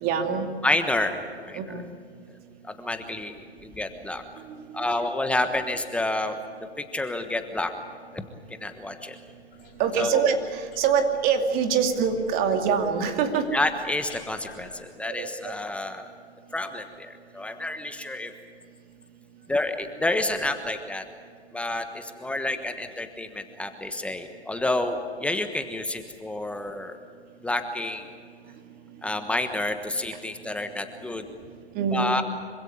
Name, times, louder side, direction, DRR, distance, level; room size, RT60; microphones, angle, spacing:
voice 1, 0.0-0.5 1.5-1.9 4.5-5.0 9.8-13.4 15.0-15.5 31.7-32.2, right 6 dB, 25° right, 5 dB, 2.6 m, -25 dB
voice 2, 0.6-1.8 2.6-4.2 4.7-6.4 6.8-7.7 8.1-8.2 8.5-9.2 10.0-10.2 13.5-16.1 16.5-18.3 19.5-21.1 21.5-27.0 27.4-28.1 29.0-31.3 31.9-32.2, left 2 dB, 5° left, 7 dB, 1.2 m, -29 dB
sound 1, 9.5-14.8, left 7 dB, 60° left, 4.7 m, -48 dB
26.0 x 16.5 x 9.7 m, 2.1 s
hypercardioid pair, 130°, 33 cm